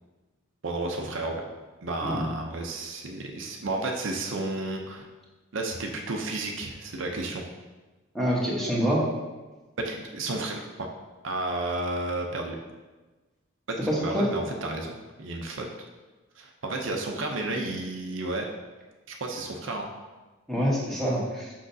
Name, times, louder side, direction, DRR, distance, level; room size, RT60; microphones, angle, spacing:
voice 1, 0.6-1.4 1.8-5.1 5.5-7.4 9.8-10.9 11.2-12.6 13.7-15.9 16.4-18.5 19.1-19.9, right 2 dB, 65° right, 2 dB, 0.6 m, -32 dB
voice 2, 8.1-9.0 13.8-14.3 20.5-21.5, equal, ahead, -6 dB, 1.2 m, -26 dB
6.2 x 5.6 x 2.7 m, 1.2 s
head